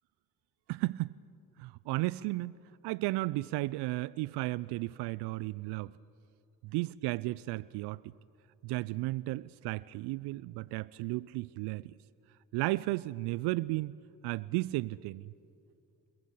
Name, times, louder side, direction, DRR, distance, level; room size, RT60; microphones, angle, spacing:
voice 1, 0.7-1.1 1.6-2.5 2.8-5.9 6.6-8.0 8.6-11.9 12.5-14.0 14.2-15.3, right 19 dB, 75° right, 19 dB, 0.5 m, -34 dB
27.5 x 22.0 x 5.6 m, 2.5 s
hypercardioid pair, 40°, 41 cm